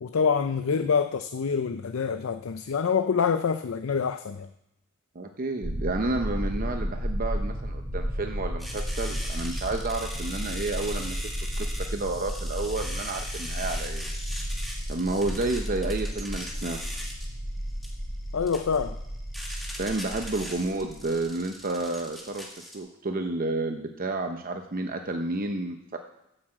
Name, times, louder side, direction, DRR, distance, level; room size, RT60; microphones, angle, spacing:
voice 1, 0.0-4.5 18.3-19.0, left 6 dB, 75° left, 10 dB, 0.5 m, -26 dB
voice 2, 5.1-11.2 11.6-14.1 14.9-16.8 19.8-26.0, right 2 dB, 45° right, 5 dB, 0.7 m, -31 dB
sound 1, 5.6-21.3, equal, 20° right, 2.8 m, -33 dB
sound 2, 8.6-22.8, equal, ahead, 1.9 m, -40 dB
9.3 x 7.6 x 7.7 m, 0.86 s
head